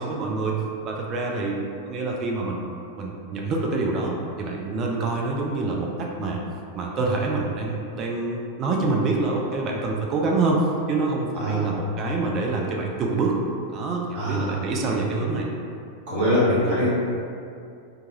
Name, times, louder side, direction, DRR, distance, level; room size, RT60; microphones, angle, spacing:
voice 1, 0.0-1.6 1.8-6.4 6.7-13.3 13.7-15.5, right 3 dB, 30° right, -1 dB, 0.3 m, -26 dB
voice 2, 11.4-11.7 14.1-14.5 16.1-16.9, equal, 50° right, -10 dB, 1.1 m, -22 dB
2.8 x 2.3 x 2.8 m, 2.4 s
figure-of-eight pair, 90°, 0 cm